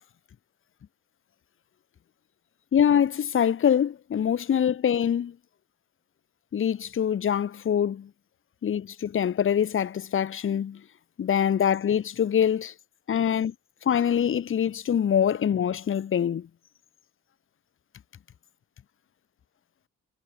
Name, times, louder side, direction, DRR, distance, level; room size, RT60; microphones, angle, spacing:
voice 1, 2.7-5.4 6.5-8.1 8.6-10.8 11.2-12.7 13.1-13.5 13.8-16.5, left 9 dB, 45° left, 1.1 m, -24 dB
cardioid pair, 90°, 30 cm